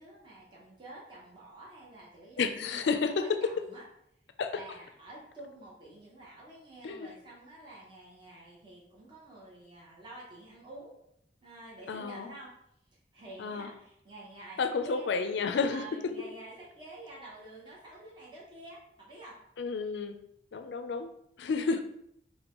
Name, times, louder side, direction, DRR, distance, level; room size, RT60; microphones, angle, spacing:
voice 1, 0.0-3.8 4.5-11.0 11.4-12.5 13.1-15.1 15.7-19.4, right 2 dB, 25° right, -5 dB, 0.8 m, -49 dB
voice 2, 2.4-3.3 4.4-4.6 6.8-7.1 11.9-12.4 13.4-13.7 14.6-15.9 19.6-20.2 20.5-21.1 21.4-21.8, left 4 dB, 80° left, 8 dB, 0.4 m, -31 dB
5.1 x 2.1 x 2.9 m, 0.75 s
head